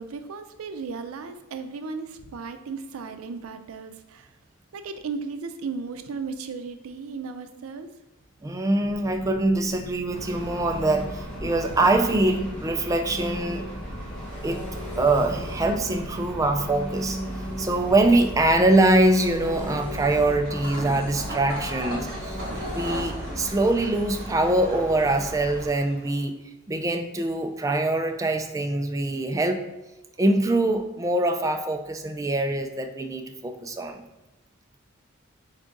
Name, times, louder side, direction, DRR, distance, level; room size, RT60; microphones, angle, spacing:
voice 1, 0.0-4.3 4.7-7.9, right 4 dB, 90° right, 9 dB, 0.4 m, -35 dB
voice 2, 8.4-13.7 14.4-14.6 15.0-26.4 26.7-29.6 30.2-34.0, right 2 dB, 15° right, 5 dB, 0.3 m, -24 dB
sound 1, 8.8-24.2, left 1 dB, 40° left, 0.5 m, -43 dB
Engine, 10.1-25.7, equal, 5° left, 1.3 m, -36 dB
sound 2, 20.4-26.2, equal, 45° right, 1.5 m, -37 dB
3.9 x 3.5 x 3.7 m, 1.0 s
head